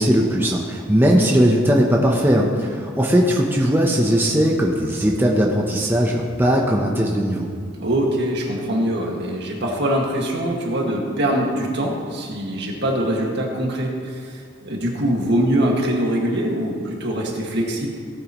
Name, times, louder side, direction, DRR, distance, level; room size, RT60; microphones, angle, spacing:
voice 1, 0.0-7.5, equal, 10° right, -1 dB, 0.8 m, -18 dB
voice 2, 7.7-17.9, right 1 dB, 60° right, -1 dB, 1.9 m, -23 dB
17.0 x 9.0 x 3.1 m, 2.1 s
head